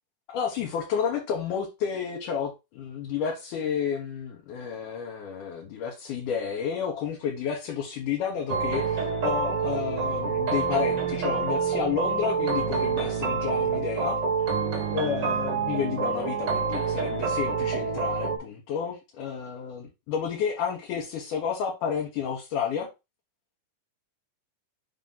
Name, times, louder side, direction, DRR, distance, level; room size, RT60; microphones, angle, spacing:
voice 1, 0.3-14.2 14.9-22.9, left 7 dB, 70° left, 2.6 m, -31 dB
sound 1, 8.5-18.4, right 5 dB, 80° right, 0.9 m, -27 dB
5.6 x 3.0 x 5.6 m
omnidirectional pair, 4.1 m